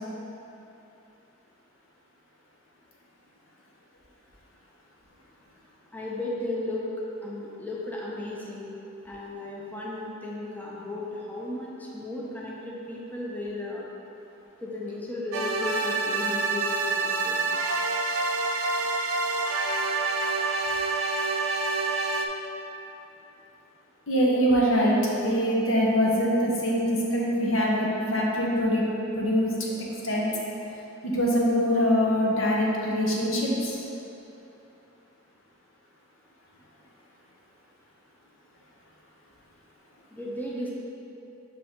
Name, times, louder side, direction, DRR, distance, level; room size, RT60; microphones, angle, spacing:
voice 1, 5.9-6.8 7.2-8.7 9.0-13.9 14.6-17.4 40.1-40.7, left 2 dB, 10° left, -5 dB, 0.6 m, -35 dB
sound 1, 15.3-22.3, right 3 dB, 90° right, 0.5 m, -27 dB
voice 2, 24.1-28.8 29.1-29.7 30.0-30.3 31.0-33.8, equal, 75° left, -3 dB, 1.0 m, -24 dB
5.5 x 5.1 x 3.7 m, 3.0 s
head